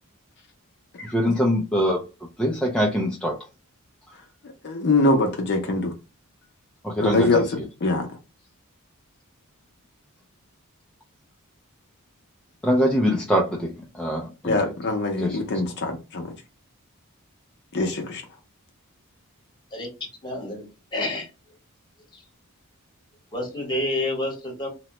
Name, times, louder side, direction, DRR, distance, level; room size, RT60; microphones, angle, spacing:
voice 1, 1.0-2.0 2.4-3.4 6.8-7.7 12.6-14.7 15.2-15.6, equal, 5° left, 0.4 m, -24 dB
voice 2, 4.6-5.9 7.0-7.5 7.8-8.1 14.4-16.3 17.7-18.2, left 2 dB, 50° left, 0.6 m, -23 dB
voice 3, 20.2-20.7 20.9-21.3 22.1-22.2 23.3-24.7, left 1 dB, 20° left, 1.1 m, -28 dB
2.9 x 2.1 x 2.9 m
head